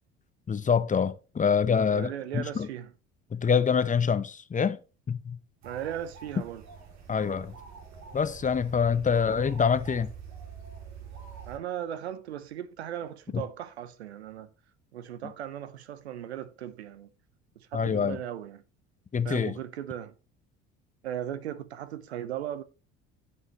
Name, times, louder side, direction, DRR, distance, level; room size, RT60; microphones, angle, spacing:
voice 1, 0.5-2.7 3.3-4.8 5.1-5.4 7.1-7.6 8.1-10.1 13.3-13.4 17.7-18.2 19.1-19.6, left 6 dB, 25° left, 0.9 m, -26 dB
voice 2, 1.9-2.9 5.6-6.6 11.5-14.5 14.9-17.1 17.6-18.6 19.2-20.1 21.0-22.6, right 10 dB, 85° right, 0.8 m, -37 dB
sound 1, 5.6-11.6, right 6 dB, 55° right, 2.7 m, -45 dB
16.0 x 5.6 x 3.0 m
hypercardioid pair, 65°, 32 cm